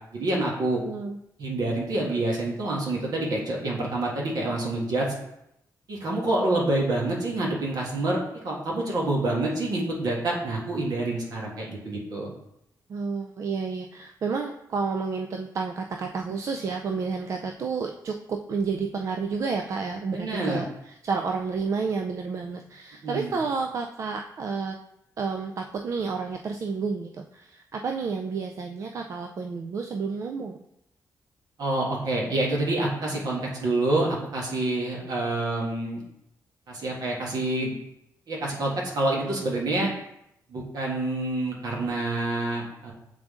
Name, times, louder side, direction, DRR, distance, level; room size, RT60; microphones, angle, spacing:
voice 1, 0.1-0.8 1.4-5.1 5.9-8.2 8.4-12.3 20.1-20.6 23.0-23.4 31.6-36.0 36.7-37.7 38.3-39.9 40.5-42.9, right 2 dB, 70° right, -2 dB, 1.6 m, -27 dB
voice 2, 0.8-1.2 12.9-24.8 25.2-30.6, right 5 dB, 50° right, 4 dB, 0.4 m, -30 dB
7.4 x 3.7 x 3.7 m, 0.82 s
wide cardioid pair, 130°, 7 cm